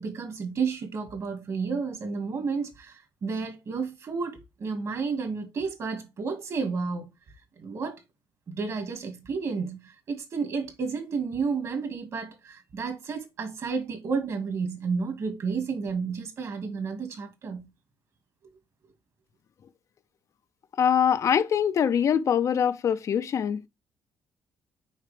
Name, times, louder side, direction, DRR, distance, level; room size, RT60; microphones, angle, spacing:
voice 1, 0.0-7.1 7.6-8.0 8.5-17.7, right 5 dB, 45° right, 2.0 m, -31 dB
voice 2, 20.8-23.7, left 8 dB, 50° left, 0.5 m, -23 dB
6.5 x 4.8 x 3.4 m
cardioid pair, 130°, 7 cm